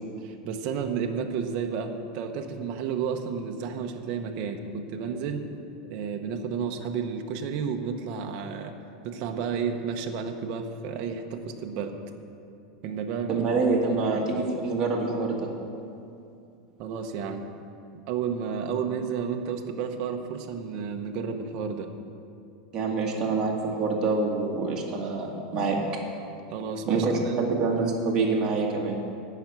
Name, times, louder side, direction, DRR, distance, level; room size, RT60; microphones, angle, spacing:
voice 1, 0.2-5.5 5.8-8.7 9.0-12.0 12.8-13.5 14.0-14.3 16.8-17.5 18.1-21.9 26.5-27.6, right 6 dB, 40° right, 4 dB, 0.8 m, -32 dB
voice 2, 13.3-15.5 22.7-25.8 26.9-29.0, right 3 dB, 20° right, -2 dB, 1.6 m, -26 dB
12.0 x 5.9 x 8.8 m, 2.5 s
supercardioid pair, 175°, 3 cm